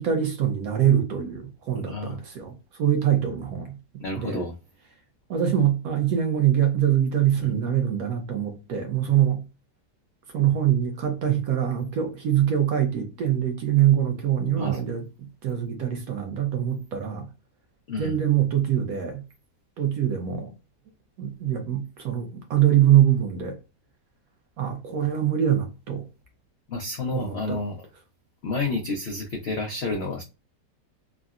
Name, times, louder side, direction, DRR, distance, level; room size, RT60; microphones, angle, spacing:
voice 1, 0.0-2.5 2.8-3.7 4.2-4.4 5.3-9.4 10.3-15.0 15.4-17.3 18.0-19.2 19.8-20.5 21.2-23.6 24.6-26.0 27.1-27.6, right 10 dB, 65° right, 1.0 m, -23 dB
voice 2, 1.8-2.2 4.0-4.5 7.4-7.5 14.5-14.8 17.9-18.2 26.7-27.8 28.4-30.2, left 3 dB, 80° left, 0.5 m, -30 dB
3.6 x 2.0 x 2.4 m
omnidirectional pair, 1.9 m